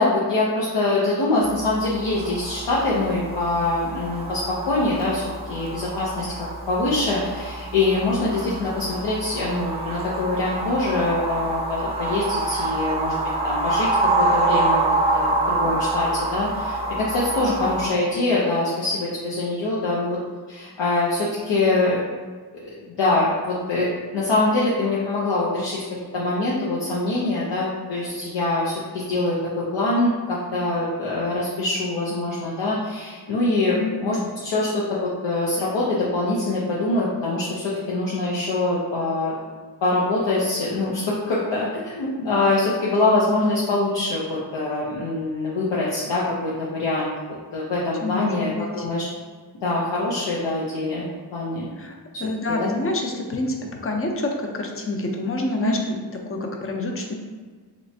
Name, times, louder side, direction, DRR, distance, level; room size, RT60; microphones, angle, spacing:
voice 1, 0.0-5.2 5.5-6.3 6.7-13.1 13.4-13.9 14.2-14.8 15.1-20.2 20.5-22.0 22.6-22.7 23.0-25.8 26.1-39.3 39.8-47.1 47.5-49.1 49.6-51.1 51.3-51.7 52.6-52.7 55.6-55.7, left 2 dB, 80° left, -6 dB, 0.7 m, -24 dB
sound 1, 1.4-17.9, right 2 dB, 15° right, 0.6 m, -26 dB
voice 2, 48.0-48.9 51.8-53.6 53.8-56.0 56.3-57.1, left 2 dB, 30° left, 2 dB, 0.6 m, -27 dB
3.2 x 3.0 x 2.7 m, 1.5 s
cardioid pair, 50°, 42 cm